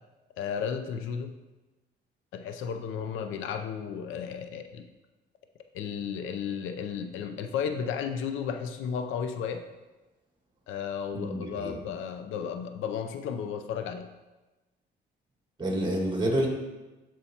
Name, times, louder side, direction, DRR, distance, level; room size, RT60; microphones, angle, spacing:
voice 1, 0.4-1.3 2.3-4.9 5.7-9.6 10.7-14.1, left 7 dB, 90° left, 7 dB, 0.5 m, -33 dB
voice 2, 11.1-11.8 15.6-16.5, right 1 dB, 25° right, 0 dB, 1.9 m, -28 dB
11.0 x 4.5 x 2.9 m, 1.1 s
cardioid pair, 90°, 20 cm